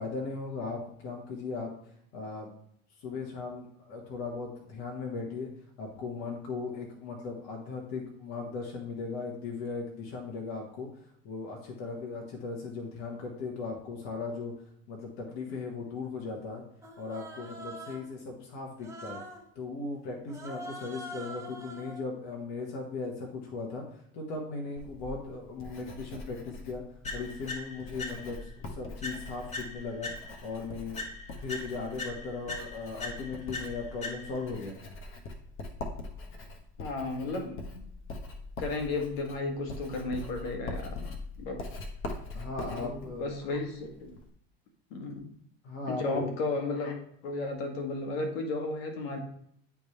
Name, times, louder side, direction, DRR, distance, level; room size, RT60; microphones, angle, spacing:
voice 1, 0.0-1.7 2.1-2.5 3.0-5.5 5.8-10.9 11.2-14.5 14.9-16.6 17.0-19.2 19.5-23.8 24.1-26.8 27.1-30.1 30.4-31.0 31.3-34.8 42.3-43.3 45.6-46.3, left 4 dB, 60° left, -1 dB, 1.6 m, -37 dB
Human voice, 16.8-18.2 18.8-19.5 20.3-22.0, right 1 dB, 10° right, 1.1 m, -44 dB
Writing, 24.8-44.3, left 2 dB, 40° left, 1.3 m, -43 dB
sound 1, 27.0-28.5 29.0-30.6 31.0-34.6, left 2 dB, 25° left, 1.4 m, -41 dB
voice 2, 36.8-37.8 38.6-41.0 41.4-41.6 42.6-42.9 43.2-44.2 44.9-45.3 45.9-49.2, left 3 dB, 75° left, 3 dB, 1.6 m, -34 dB
10.0 x 3.6 x 3.3 m, 0.69 s
supercardioid pair, 105°, 30 cm